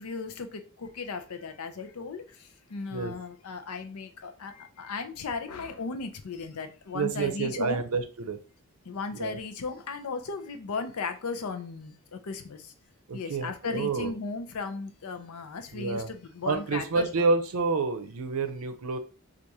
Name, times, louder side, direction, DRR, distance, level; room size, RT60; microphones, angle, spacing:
voice 1, 0.0-2.2 2.7-7.8 8.9-12.6 13.1-17.2, left 4 dB, 90° left, 0.6 m, -36 dB
voice 2, 6.9-8.4 9.1-9.4 13.1-14.1 15.7-16.1 16.4-19.0, right 4 dB, 85° right, 0.6 m, -29 dB
4.7 x 2.5 x 2.7 m
head